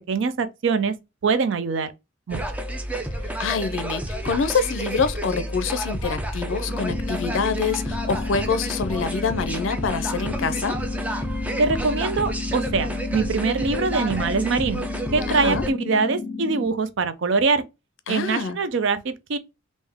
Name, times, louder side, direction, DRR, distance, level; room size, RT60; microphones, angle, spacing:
voice 1, 0.1-0.9 1.2-1.9 2.3-2.4 11.6-14.9 15.1-17.6 18.1-19.4, right 4 dB, 70° right, 0.5 m, -23 dB
sound 1, 2.3-15.7, right 1 dB, 10° right, 0.5 m, -30 dB
voice 2, 3.4-10.8 15.3-15.6 18.1-18.6, left 5 dB, 75° left, 0.5 m, -26 dB
sound 2, 6.7-16.7, left 4 dB, 40° left, 1.1 m, -33 dB
3.5 x 2.6 x 3.4 m
head